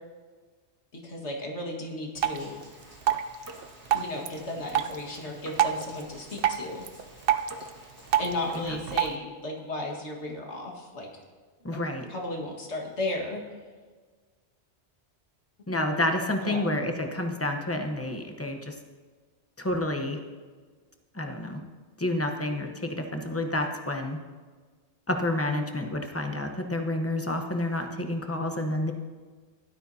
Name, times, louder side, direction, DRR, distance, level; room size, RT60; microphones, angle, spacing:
voice 1, 0.9-2.6 3.9-6.8 8.2-11.1 11.7-13.4 16.4-16.7, left 2 dB, 85° left, -1 dB, 2.1 m, -35 dB
Drip, 2.2-9.2, right 10 dB, 60° right, 0.8 m, -30 dB
sound 1, 2.3-8.7, right 1 dB, 20° right, 1.8 m, -50 dB
voice 2, 11.6-12.1 15.7-18.7 19.6-20.2 21.1-21.6 22.0-24.2 25.1-28.9, left 1 dB, 15° left, 4 dB, 0.9 m, -29 dB
16.5 x 12.0 x 2.8 m, 1.5 s
omnidirectional pair, 1.1 m